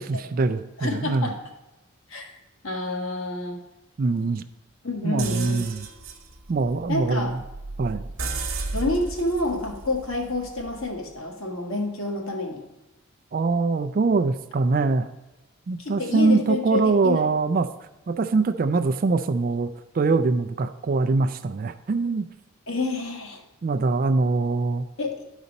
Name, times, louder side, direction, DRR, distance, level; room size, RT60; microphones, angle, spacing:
voice 1, 0.0-1.3 4.0-4.4 5.0-5.8 6.5-7.3 7.8-8.1 13.3-15.1 15.7-17.7 18.1-22.2 23.6-24.8, right 3 dB, 40° right, 9 dB, 0.3 m, -23 dB
voice 2, 0.8-1.4 2.1-2.3 2.6-3.6 4.8-5.6 6.9-7.4 8.7-12.6 15.8-17.2 22.7-23.4 25.0-25.2, left 2 dB, 70° left, 1 dB, 1.6 m, -28 dB
sound 1, 5.2-11.0, right 3 dB, 70° right, 1.0 m, -35 dB
12.0 x 4.1 x 5.2 m, 1.0 s
head